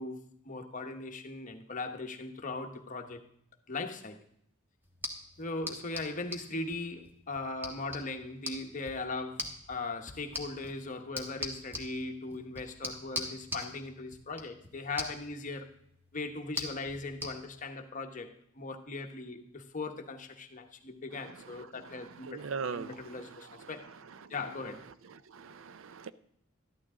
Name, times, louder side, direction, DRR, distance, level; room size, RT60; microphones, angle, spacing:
voice 1, 0.0-3.2 3.7-4.2 5.4-15.7 16.1-22.4 22.7-23.8 24.3-24.9, left 3 dB, 35° left, 5 dB, 1.0 m, -39 dB
sound 1, 4.8-17.3, left 1 dB, 10° right, 1.3 m, -43 dB
voice 2, 22.2-23.0 24.2-24.3 25.3-26.1, right 5 dB, 65° right, 15 dB, 0.5 m, -38 dB
13.0 x 11.5 x 3.7 m, 0.72 s
head